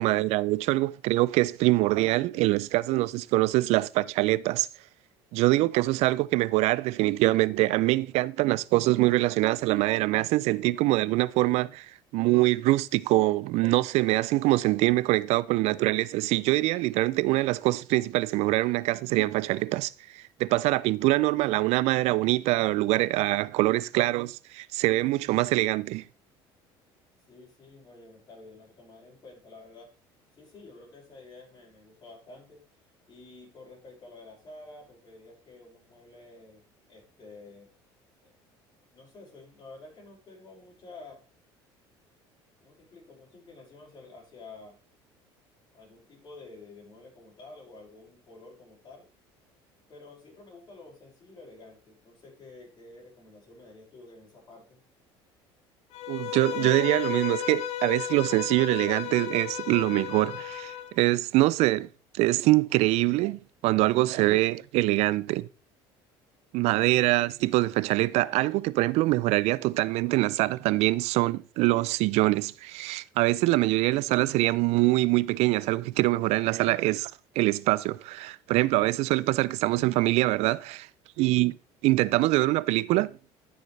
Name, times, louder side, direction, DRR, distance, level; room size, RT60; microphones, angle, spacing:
voice 1, 0.0-4.7 5.3-26.0 56.1-61.9 62.2-65.5 66.5-77.1 77.4-80.9 81.2-81.6 81.8-83.2, right 19 dB, 70° right, 0.4 m, -24 dB
voice 2, 27.3-29.9 30.4-32.6 33.1-36.6 36.9-37.7 38.2-38.3 38.9-41.2 42.6-44.8 45.7-49.0 49.9-54.8, left 3 dB, 40° left, 6.1 m, -50 dB
Bowed string instrument, 55.9-60.9, left 10 dB, 65° left, 0.9 m, -34 dB
11.5 x 6.6 x 3.3 m
supercardioid pair, 95°, 12 cm